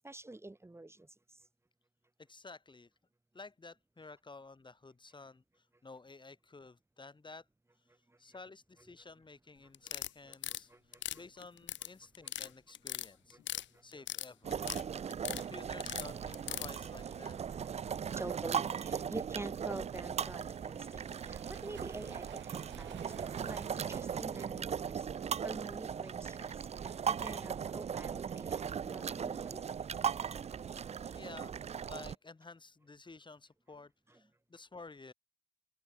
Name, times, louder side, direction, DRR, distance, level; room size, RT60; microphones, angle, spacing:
voice 1, 0.0-1.0 10.7-10.8 15.3-15.4 15.8-15.9 18.2-25.1 25.4-26.5 27.1-29.8, right 2 dB, 15° right, 2.6 m, -46 dB
voice 2, 2.2-2.9 3.3-7.5 8.2-13.4 13.8-14.9 15.3-17.4 31.1-31.5 31.8-35.1, left 3 dB, 25° left, 5.8 m, -52 dB
sound 1, 9.7-10.6 10.9-11.9 12.1-12.5 12.7-13.6 13.9-14.8 15.1-15.4 15.8-16.7, left 12 dB, 70° left, 1.0 m, -39 dB
sound 2, 14.4-32.2, right 7 dB, 35° right, 0.5 m, -38 dB
sound 3, 15.2-24.6, right 11 dB, 70° right, 1.8 m, -54 dB
cardioid pair, 90°, 20 cm